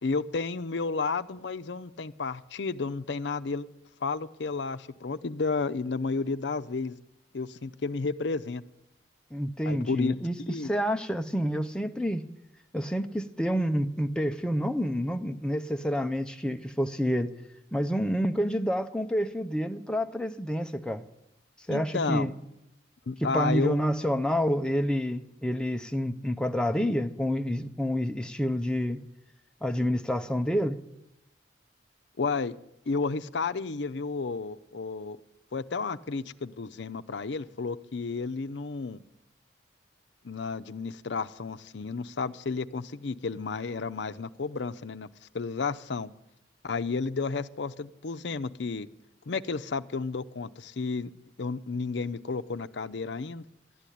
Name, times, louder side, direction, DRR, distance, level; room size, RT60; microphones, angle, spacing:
voice 1, 0.0-3.7 4.0-7.0 7.3-8.6 9.7-10.2 10.5-10.7 21.7-22.3 23.1-23.8 32.2-32.5 32.9-35.2 35.5-39.0 40.2-45.1 45.3-46.1 46.6-48.9 49.3-51.1 51.4-53.4, left 4 dB, 75° left, 13 dB, 0.6 m, -32 dB
voice 2, 9.3-12.3 12.7-17.3 17.7-21.0 21.7-22.3 23.2-29.0 29.6-30.8, equal, 5° left, 6 dB, 0.6 m, -28 dB
12.5 x 10.5 x 10.0 m, 0.87 s
head